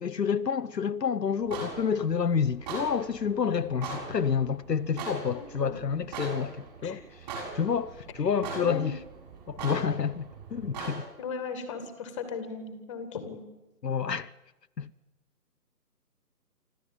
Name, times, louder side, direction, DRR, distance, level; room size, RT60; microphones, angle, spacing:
voice 1, 0.0-7.2 7.5-9.0 9.5-11.1 13.8-14.3 14.8-14.9, left 6 dB, 75° left, 0.8 m, -29 dB
sound 1, 1.4-11.0, right 4 dB, 25° right, 6.6 m, -41 dB
voice 2, 5.3-5.8 6.8-7.0 8.3-8.9 11.2-13.5, left 5 dB, 20° left, 2.0 m, -37 dB
25.5 x 14.0 x 8.8 m
figure-of-eight pair, 150°, 49 cm